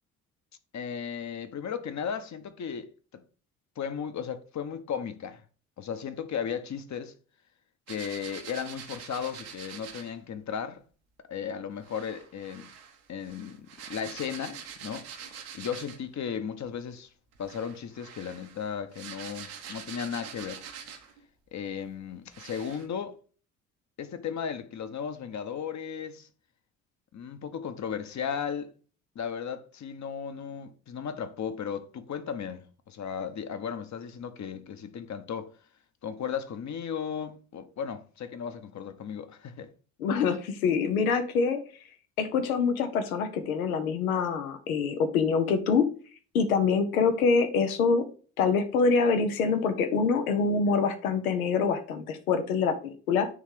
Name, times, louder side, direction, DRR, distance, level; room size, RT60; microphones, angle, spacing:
voice 1, 0.7-3.2 3.8-5.4 5.8-7.1 7.9-10.8 11.3-12.7 13.1-15.1 15.5-17.1 17.4-20.6 21.5-23.2 24.0-26.3 27.1-28.7 29.1-35.5 36.0-39.7, left 7 dB, 40° left, 0.9 m, -35 dB
sound 1, 7.9-10.1 11.8-16.1 17.3-21.2 21.8-21.9 22.3-22.9, right 7 dB, 75° right, 1.1 m, -45 dB
voice 2, 40.0-41.6 42.2-45.9 46.3-48.1 48.4-53.3, left 5 dB, 85° left, 0.8 m, -25 dB
9.3 x 3.3 x 3.6 m
hypercardioid pair, 45°, 42 cm